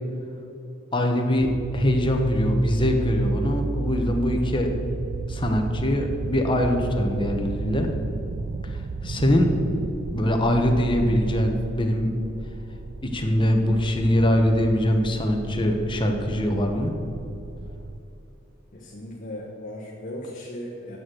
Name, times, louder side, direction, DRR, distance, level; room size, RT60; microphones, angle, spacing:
voice 1, 0.9-4.7 5.3-7.9 8.7-9.5 10.1-12.1 13.0-16.9, left 1 dB, 25° left, 3 dB, 1.1 m, -23 dB
sound 1, 1.4-18.0, right 3 dB, 45° right, 0.4 m, -33 dB
voice 2, 18.7-21.0, left 1 dB, 40° left, -5 dB, 1.3 m, -37 dB
9.4 x 6.3 x 7.8 m, 2.9 s
head